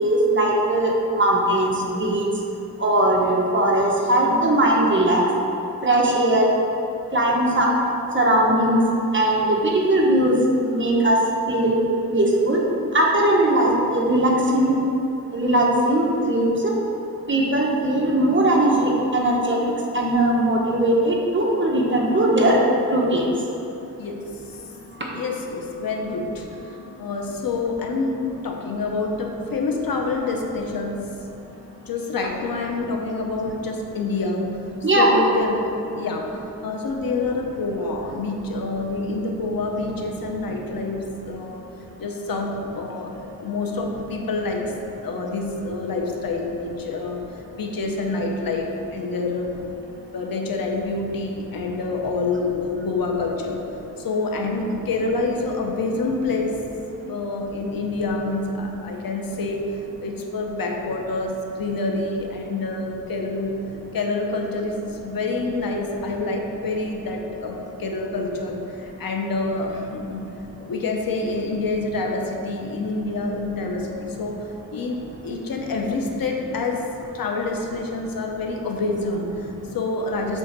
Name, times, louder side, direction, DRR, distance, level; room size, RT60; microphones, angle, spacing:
voice 1, 0.0-2.3 2.8-5.2 5.8-6.5 7.1-7.7 8.1-8.8 9.1-10.4 10.7-11.2 11.5-11.8 12.1-12.6 12.9-14.8 15.3-16.7 17.3-19.6 19.9-22.6 22.9-23.3 25.1-25.2 34.8-35.2, right 1 dB, 35° right, -3 dB, 1.3 m, -19 dB
voice 2, 24.0-24.6 25.1-31.2 31.9-34.5 34.9-41.7 42.0-49.6 50.1-53.6 54.0-56.6 57.1-63.6 63.9-70.3 70.6-80.4, left 3 dB, 85° left, 2 dB, 0.9 m, -27 dB
7.7 x 3.8 x 6.0 m, 2.8 s
wide cardioid pair, 95°, 34 cm